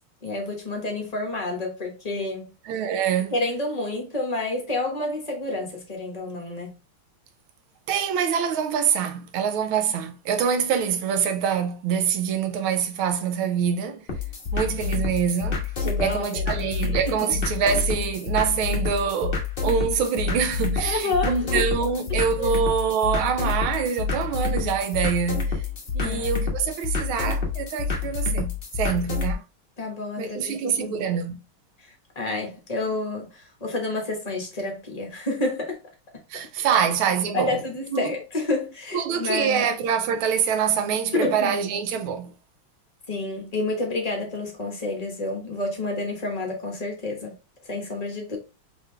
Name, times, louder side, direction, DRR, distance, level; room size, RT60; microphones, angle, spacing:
voice 1, 0.2-2.5 3.3-6.7 15.8-16.7 17.1-17.3 20.8-21.6 22.4-22.5 26.0-26.3 29.8-31.0 31.8-35.8 36.7-36.9 37.3-39.6 41.1-41.5 43.1-47.3 47.6-48.4, left 2 dB, 25° left, 0.9 m, -29 dB
voice 2, 2.6-3.3 7.9-14.1 14.5-15.7 16.0-25.6 25.9-29.4 30.2-31.4 36.3-37.6 37.9-38.1 38.9-42.3, right 7 dB, 80° right, 1.4 m, -25 dB
sound 1, 14.1-29.3, left 5 dB, 45° left, 0.7 m, -28 dB
3.8 x 3.5 x 3.1 m
omnidirectional pair, 2.3 m